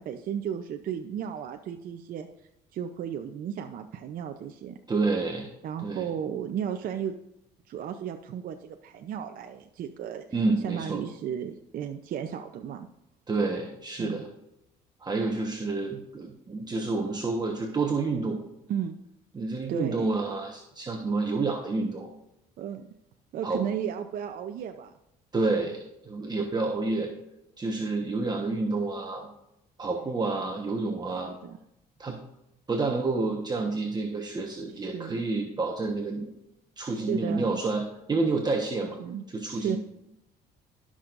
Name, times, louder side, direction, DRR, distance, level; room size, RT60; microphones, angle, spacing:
voice 1, 0.0-2.3 2.7-4.8 5.6-7.2 7.7-12.9 14.0-14.2 18.7-19.0 19.7-20.1 22.6-22.9 23.3-24.9 30.0-30.1 31.3-31.6 34.9-35.2 36.9-37.6 39.0-39.8, right 9 dB, 60° right, 5 dB, 0.6 m, -34 dB
voice 2, 4.9-5.5 5.8-6.1 10.3-11.0 13.3-14.3 15.0-18.4 19.3-22.1 23.4-23.6 25.3-27.1 27.6-29.3 29.8-31.3 32.0-32.2 32.7-36.3 36.8-39.0 39.3-39.8, right 3 dB, 25° right, 1 dB, 1.2 m, -29 dB
16.0 x 6.3 x 2.6 m, 0.85 s
cardioid pair, 110°, 17 cm